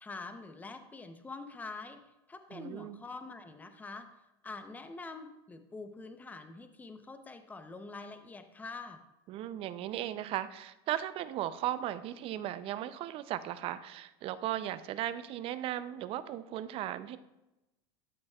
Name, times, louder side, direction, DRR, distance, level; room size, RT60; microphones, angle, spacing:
voice 1, 0.0-2.0 2.3-4.1 4.4-9.0, left 3 dB, 15° left, 8 dB, 0.7 m, -45 dB
voice 2, 2.5-3.0 9.3-17.2, right 12 dB, 45° right, 14 dB, 0.5 m, -36 dB
12.5 x 6.4 x 2.3 m, 0.97 s
supercardioid pair, 110°, 13 cm